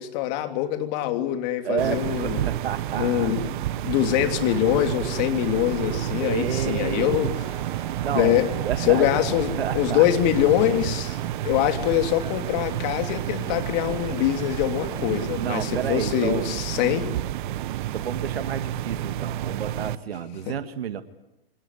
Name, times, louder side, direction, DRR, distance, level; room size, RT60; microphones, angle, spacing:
voice 1, 0.0-2.5 3.0-7.3 8.1-8.5 8.8-11.2 11.4-17.1 20.5-20.6, left 12 dB, 45° left, 7 dB, 3.1 m, -24 dB
voice 2, 1.6-3.3 6.2-7.1 8.0-9.1 9.6-10.1 15.4-16.5 17.9-21.0, right 8 dB, 75° right, 11 dB, 1.8 m, -30 dB
sound 1, 1.8-20.0, right 13 dB, 55° right, 1.2 m, -30 dB
sound 2, 4.0-16.9, right 4 dB, 10° right, 3.4 m, -44 dB
26.0 x 19.0 x 9.7 m, 0.91 s
hypercardioid pair, 125°, 30 cm